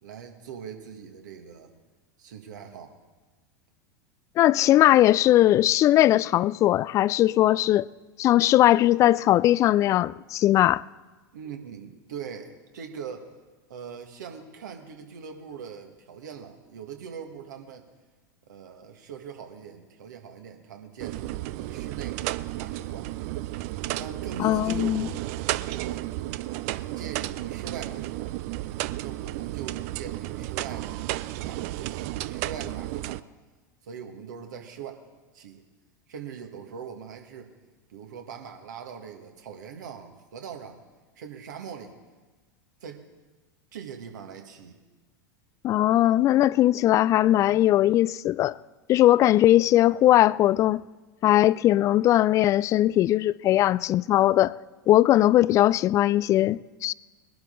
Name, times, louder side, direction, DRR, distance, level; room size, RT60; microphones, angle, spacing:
voice 1, 0.0-1.7 2.2-2.9 11.3-13.3 13.7-17.9 18.5-22.2 22.5-23.1 23.9-26.1 26.7-28.4 29.0-31.0 31.4-33.3 33.8-35.0 35.3-35.6 36.1-37.5 37.9-40.8 41.1-41.9 42.8-43.0 43.7-44.8, right 7 dB, 65° right, 1.8 m, -41 dB
voice 2, 4.4-7.9 8.2-10.8 24.4-25.1 45.6-48.6 48.9-50.8 51.2-54.5 54.9-56.9, left 14 dB, 30° left, 0.3 m, -20 dB
sound 1, 21.0-33.2, right 16 dB, 50° right, 0.4 m, -33 dB
21.0 x 11.5 x 4.0 m
figure-of-eight pair, 85°, 11 cm